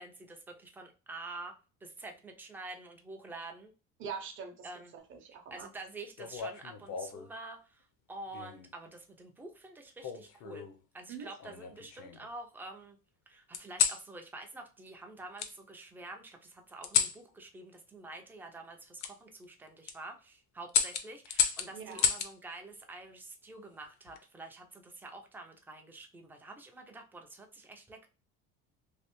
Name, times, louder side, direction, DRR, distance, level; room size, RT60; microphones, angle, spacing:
voice 1, 0.0-3.7 4.6-4.9 5.5-10.7 10.9-13.0 13.3-28.1, right 2 dB, 5° right, 3 dB, 0.3 m, -47 dB
voice 2, 4.0-4.7 5.1-5.7 11.1-11.3 21.7-22.1, right 6 dB, 40° right, 5 dB, 0.6 m, -42 dB
sound 1, 6.2-7.3 8.3-8.7 10.0-10.8 11.4-12.3 13.5-14.0 15.4-15.5 16.8-17.2 19.0-19.1 19.7-20.0 20.7-22.3 23.8-24.2, left 8 dB, 65° left, 0.6 m, -32 dB
3.2 x 2.7 x 3.0 m, 0.33 s
cardioid pair, 165°, 31 cm